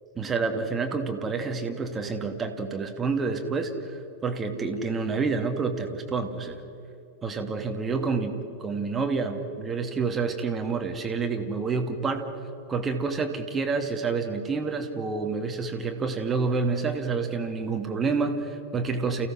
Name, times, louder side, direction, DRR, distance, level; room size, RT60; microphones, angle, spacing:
voice 1, 0.2-6.6 7.2-8.3 8.6-12.3 12.7-19.3, right 4 dB, 20° right, 5 dB, 2.1 m, -28 dB
29.5 x 16.0 x 6.3 m, 2.9 s
figure-of-eight pair, 90°, 0 cm